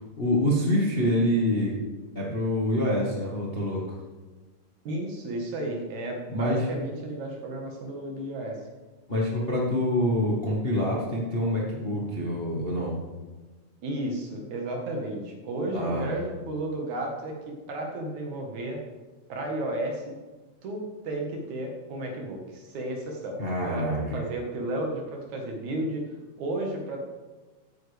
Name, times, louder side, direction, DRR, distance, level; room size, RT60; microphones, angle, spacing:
voice 1, 0.0-1.8 2.1-4.0 6.3-6.6 9.1-13.0 15.7-16.1 23.4-24.2, left 1 dB, 30° left, -4 dB, 1.1 m, -26 dB
voice 2, 4.8-8.5 13.8-17.4 17.7-18.8 19.3-20.1 20.6-23.4 23.6-23.9 24.1-26.0 26.4-27.1, right 1 dB, 70° right, 1 dB, 2.9 m, -33 dB
14.5 x 9.2 x 3.5 m, 1.2 s
omnidirectional pair, 3.6 m